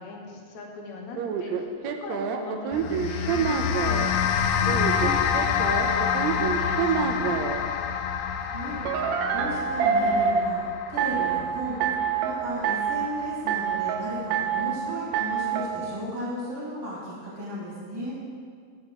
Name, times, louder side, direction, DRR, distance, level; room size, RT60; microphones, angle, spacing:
voice 1, 0.0-7.4, left 3 dB, 65° left, 1 dB, 2.2 m, -40 dB
sound 1, 1.2-4.1 4.7-7.6 8.9-10.5 11.0-11.4 11.8-12.3 12.6-13.1 13.5-14.0 14.3-14.8 15.1-15.7, right 7 dB, 90° right, 1.5 m, -26 dB
sound 2, 2.7-13.3, left 7 dB, 85° left, 1.8 m, -28 dB
voice 2, 8.5-8.8 9.3-11.8 12.2-18.2, equal, 10° right, -10 dB, 1.2 m, -34 dB
7.8 x 5.9 x 7.4 m, 2.1 s
omnidirectional pair, 3.9 m